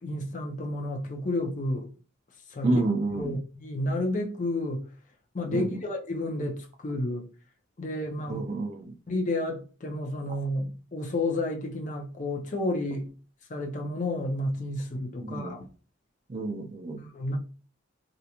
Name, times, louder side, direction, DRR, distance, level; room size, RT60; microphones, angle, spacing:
voice 1, 0.0-1.9 2.5-2.8 3.2-4.9 5.3-7.3 7.8-8.5 9.1-13.1 13.5-15.7 17.0-17.4, left 1 dB, 40° left, 0.5 m, -31 dB
voice 2, 2.6-3.3 5.5-5.6 8.3-8.9 15.3-15.5 16.3-17.0, right 2 dB, 35° right, 0.4 m, -29 dB
2.4 x 2.1 x 2.8 m
head